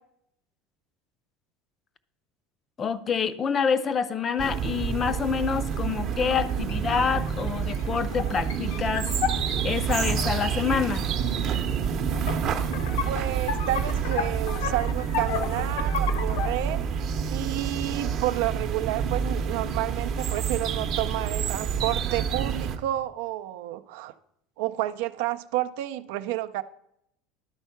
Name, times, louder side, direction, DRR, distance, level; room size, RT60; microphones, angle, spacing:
voice 1, 2.8-9.1 9.6-11.0, left 6 dB, 25° left, 0.4 m, -27 dB
sound 1, 4.4-22.8, right 7 dB, 40° right, 0.7 m, -28 dB
sound 2, 6.2-10.5 11.5-11.6 11.9-16.6, left 7 dB, 90° left, 0.9 m, -33 dB
voice 2, 13.0-16.8 17.3-24.1 24.6-26.6, right 15 dB, 75° right, 0.4 m, -30 dB
11.5 x 4.5 x 5.7 m
cardioid pair, 160°, 0 cm